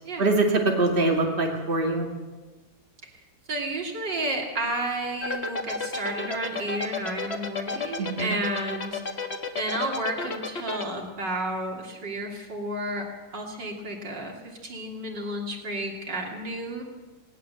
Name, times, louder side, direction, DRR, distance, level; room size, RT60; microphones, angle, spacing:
voice 1, 0.2-2.1 8.0-8.3, right 2 dB, 30° right, 0 dB, 2.7 m, -23 dB
voice 2, 3.5-9.0 9.6-13.1 13.3-16.8, right 1 dB, 70° right, 1 dB, 3.6 m, -32 dB
sound 1, 5.2-10.9, left 4 dB, 35° left, 1.8 m, -31 dB
19.5 x 18.5 x 7.7 m, 1.2 s
omnidirectional pair, 2.0 m